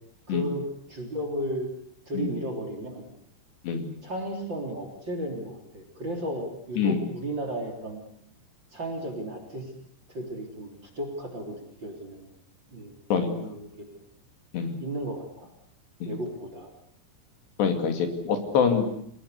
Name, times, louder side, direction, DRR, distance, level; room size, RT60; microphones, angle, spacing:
voice 1, 0.3-1.7 2.1-3.0 4.0-8.0 8.7-9.7 10.1-10.7 10.9-12.3 12.7-14.0 14.8-15.5 16.0-16.7, right 1 dB, 25° right, 4 dB, 3.9 m, -34 dB
voice 2, 17.6-18.9, left 6 dB, 65° left, 6 dB, 4.4 m, -25 dB
28.0 x 19.0 x 8.2 m, 0.69 s
omnidirectional pair, 5.4 m